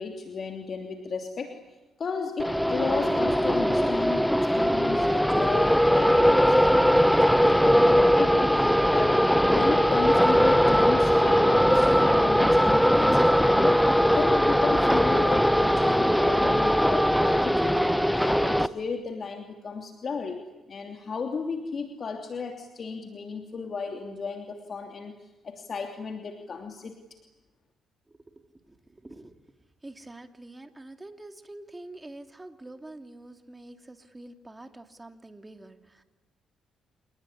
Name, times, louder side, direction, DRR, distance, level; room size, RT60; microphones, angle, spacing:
voice 1, 0.0-1.6 2.0-4.3 4.6-17.8 18.1-20.4 20.7-25.1 25.4-26.9, left 5 dB, 45° left, 4 dB, 2.9 m, -34 dB
sound 1, 2.4-18.7, equal, ahead, 1.0 m, -20 dB
voice 2, 28.1-29.4 29.8-36.0, right 2 dB, 15° right, 7 dB, 2.7 m, -46 dB
28.0 x 20.0 x 10.0 m, 1.1 s
cardioid pair, 90°, 0 cm